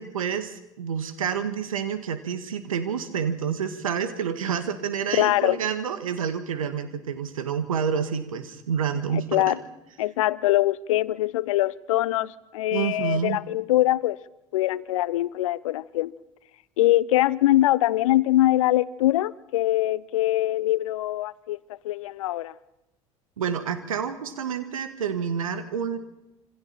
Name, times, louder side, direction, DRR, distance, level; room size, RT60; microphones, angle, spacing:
voice 1, 0.0-9.5 12.7-13.4 23.4-26.0, right 7 dB, 80° right, 1.9 m, -28 dB
voice 2, 5.2-5.6 9.1-9.6 10.0-14.2 14.5-16.1 16.8-21.6 21.8-22.5, left 15 dB, 70° left, 0.7 m, -23 dB
27.0 x 26.0 x 4.4 m
figure-of-eight pair, 65°, 17 cm